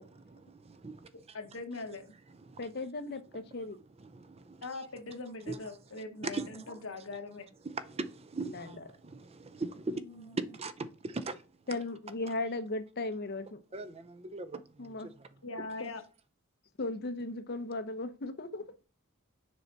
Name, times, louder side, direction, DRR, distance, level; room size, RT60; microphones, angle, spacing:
voice 1, 0.0-1.4 2.3-2.7 4.0-4.7 5.5-5.6 6.3-6.7 7.6-11.5 13.7-15.3, right 3 dB, 30° right, 0.5 m, -40 dB
voice 2, 1.3-2.1 4.6-7.5 9.9-10.4 15.4-16.0, left 3 dB, 65° left, 1.2 m, -41 dB
voice 3, 2.6-3.8 8.5-8.7 11.7-13.6 14.8-15.1 15.8-15.9 16.8-18.7, left 2 dB, 50° left, 0.8 m, -36 dB
6.8 x 4.7 x 4.0 m
head